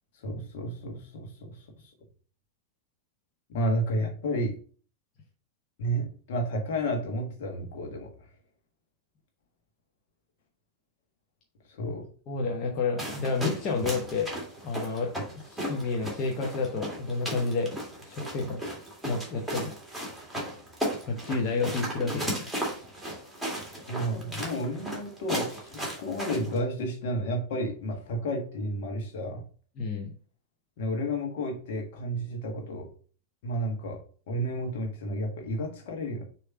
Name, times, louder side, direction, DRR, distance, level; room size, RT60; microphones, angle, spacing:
voice 1, 0.2-1.9 3.5-4.6 5.8-8.3 11.7-12.1 23.9-29.4 30.8-32.9 33.4-34.0 34.3-36.2, equal, 55° left, 2 dB, 1.5 m, -31 dB
voice 2, 12.3-14.3 14.6-15.1 15.4-18.6 19.0-19.8 21.1-22.5 29.8-30.1, left 4 dB, 35° left, 0 dB, 1.0 m, -30 dB
sound 1, 13.0-26.6, right 1 dB, ahead, 2.1 m, -36 dB
6.5 x 3.1 x 4.7 m, 0.42 s
figure-of-eight pair, 90°, 0 cm